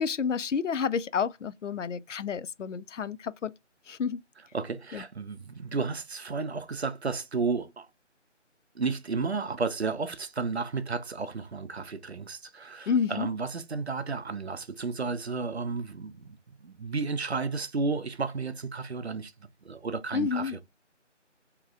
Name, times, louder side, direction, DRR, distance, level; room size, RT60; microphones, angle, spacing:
voice 1, 0.0-3.5 3.9-4.2 4.9-5.0 12.9-13.3 20.1-20.6, left 6 dB, 75° left, 0.5 m, -30 dB
voice 2, 4.5-7.9 8.8-19.3 19.6-20.6, right 4 dB, 60° right, 0.6 m, -32 dB
3.6 x 2.9 x 2.4 m
figure-of-eight pair, 175°, 37 cm